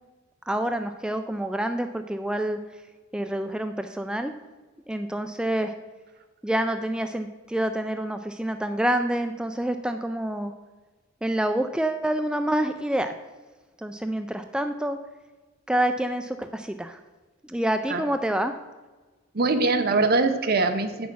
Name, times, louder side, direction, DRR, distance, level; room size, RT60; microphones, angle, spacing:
voice 1, 0.5-2.6 3.1-4.3 4.9-5.7 6.4-10.5 11.2-13.1 13.8-15.0 15.7-17.0 17.5-18.5, right 1 dB, 5° right, 7 dB, 0.3 m, -27 dB
voice 2, 19.3-21.1, right 3 dB, 50° right, 8 dB, 0.8 m, -22 dB
8.1 x 6.2 x 6.1 m, 1.3 s
head